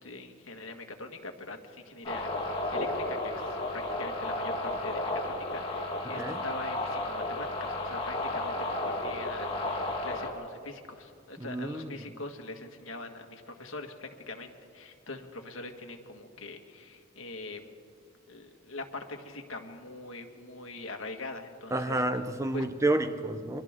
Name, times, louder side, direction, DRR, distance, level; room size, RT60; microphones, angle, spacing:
voice 1, 0.0-17.7 18.3-22.0 22.5-22.6, left 2 dB, 70° left, 4 dB, 1.9 m, -43 dB
sound 1, 2.0-10.3, left 2 dB, 30° left, 3.1 m, -33 dB
voice 2, 6.0-6.4 11.4-12.1 21.7-23.6, right 2 dB, 15° right, 9 dB, 0.7 m, -30 dB
29.0 x 24.0 x 3.7 m, 2.3 s
head